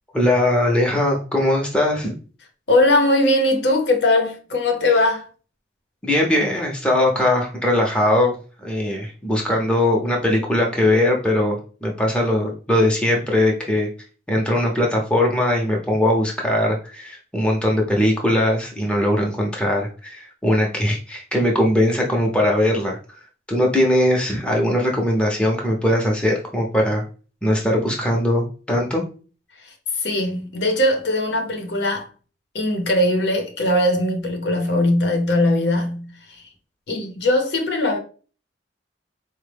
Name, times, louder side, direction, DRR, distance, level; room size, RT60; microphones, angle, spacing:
voice 1, 0.1-2.1 6.0-13.9 14.3-23.0 23.5-27.0 27.4-29.0, left 1 dB, 5° left, 0.6 m, -20 dB
voice 2, 2.7-5.3 30.0-32.1 32.5-36.1 36.9-38.0, left 1 dB, 70° left, 0.7 m, -20 dB
4.0 x 2.1 x 3.3 m
head